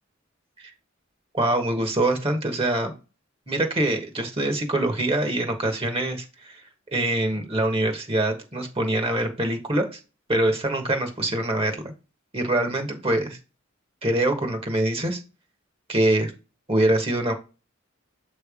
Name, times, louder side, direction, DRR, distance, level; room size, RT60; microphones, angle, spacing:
voice 1, 1.3-2.9 3.5-6.6 6.9-10.0 10.3-11.8 12.3-13.4 14.0-15.2 15.9-16.3 16.7-17.3, right 1 dB, 30° right, 6 dB, 1.4 m, -24 dB
7.6 x 3.4 x 5.0 m, 0.30 s
head